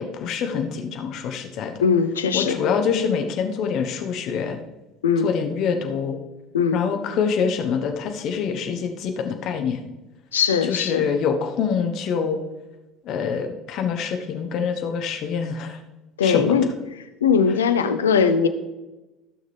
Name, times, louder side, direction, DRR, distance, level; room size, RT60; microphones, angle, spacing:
voice 1, 0.0-1.7 2.3-4.6 5.2-6.2 6.7-9.8 10.7-12.4 13.0-15.8 16.2-16.6, left 6 dB, 55° left, 5 dB, 1.2 m, -25 dB
voice 2, 1.8-2.6 5.0-5.3 6.5-6.8 10.3-11.1 16.2-16.7 17.2-18.5, left 6 dB, 85° left, 10 dB, 0.6 m, -20 dB
15.0 x 6.4 x 3.4 m, 1.1 s
figure-of-eight pair, 60°, 0 cm